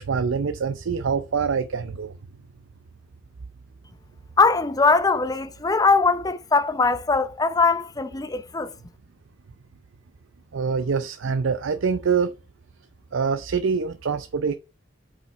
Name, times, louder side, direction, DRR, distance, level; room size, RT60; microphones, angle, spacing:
voice 1, 0.0-2.2 10.5-12.3 13.1-14.5, right 5 dB, 90° right, 0.5 m, -25 dB
voice 2, 4.4-8.7, left 4 dB, 20° left, 0.6 m, -21 dB
6.5 x 5.2 x 4.4 m
head